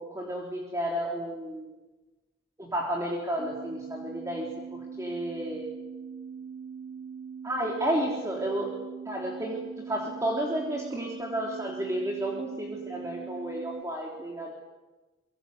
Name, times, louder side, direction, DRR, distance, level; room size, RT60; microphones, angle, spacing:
voice 1, 0.0-1.7 2.6-4.5 5.0-5.7 7.4-8.7 9.1-9.6 9.9-14.5, right 1 dB, 15° right, -2 dB, 3.4 m, -31 dB
sound 1, 3.4-13.8, right 6 dB, 30° right, 1.2 m, -42 dB
25.5 x 23.5 x 8.1 m, 1.2 s
head